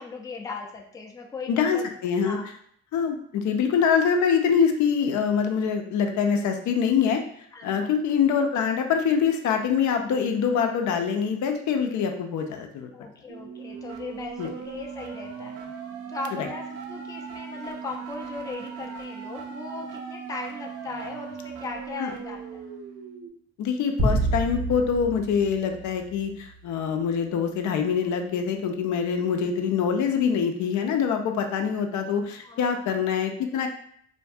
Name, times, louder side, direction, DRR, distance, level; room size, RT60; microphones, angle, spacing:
voice 1, 0.0-1.9 2.2-2.5 7.5-7.9 12.9-15.6 16.1-22.6 32.4-32.8, left 3 dB, 10° left, 1 dB, 0.3 m, -38 dB
voice 2, 1.5-2.4 2.9-7.2 7.6-12.9 14.4-14.5 16.4-16.5 22.0-22.1 23.6-33.7, left 7 dB, 70° left, 4 dB, 0.5 m, -24 dB
sound 1, 13.3-23.3, right 6 dB, 50° right, 0.4 m, -38 dB
sound 2, 24.0-26.6, right 2 dB, 70° right, 1.3 m, -28 dB
2.5 x 2.2 x 2.6 m, 0.65 s
cardioid pair, 90°, 30 cm